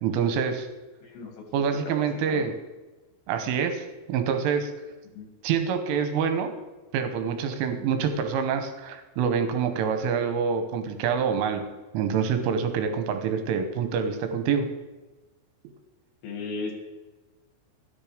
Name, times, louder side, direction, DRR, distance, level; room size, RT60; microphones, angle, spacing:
voice 1, 0.0-0.7 1.5-2.5 3.3-4.7 5.4-6.5 6.9-11.6 11.9-14.7, right 6 dB, 80° right, 7 dB, 3.6 m, -26 dB
voice 2, 1.0-1.5 1.7-2.5 3.4-3.5 5.0-5.3 16.2-16.7, left 4 dB, 85° left, 3 dB, 4.8 m, -37 dB
13.5 x 10.0 x 5.1 m, 1.2 s
omnidirectional pair, 5.7 m